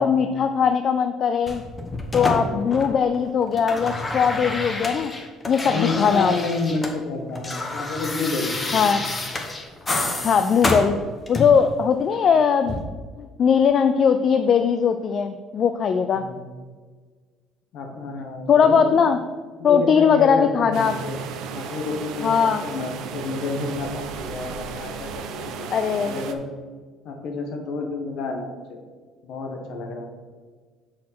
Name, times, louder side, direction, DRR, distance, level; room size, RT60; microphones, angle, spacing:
voice 1, 0.0-1.6 2.1-5.1 5.5-6.3 8.7-9.0 10.2-11.0 11.3-12.8 13.2-16.2 18.5-19.2 19.6-20.9 22.2-22.6 25.7-26.1, left 6 dB, 50° left, 9 dB, 0.4 m, -20 dB
sound 1, 1.5-3.2 3.4-7.0 7.2-11.7 12.6-12.8, left 2 dB, 25° left, 1.2 m, -29 dB
voice 2, 2.1-2.5 5.6-8.9 9.9-10.3 16.1-16.4 17.7-19.0 19.6-21.2 21.5-26.4 27.0-28.8 29.2-30.1, left 3 dB, 65° left, 3 dB, 1.4 m, -30 dB
sound 2, 20.7-26.3, right 6 dB, 70° right, 0.6 m, -34 dB
6.4 x 4.2 x 6.0 m, 1.5 s
supercardioid pair, 90°, 0 cm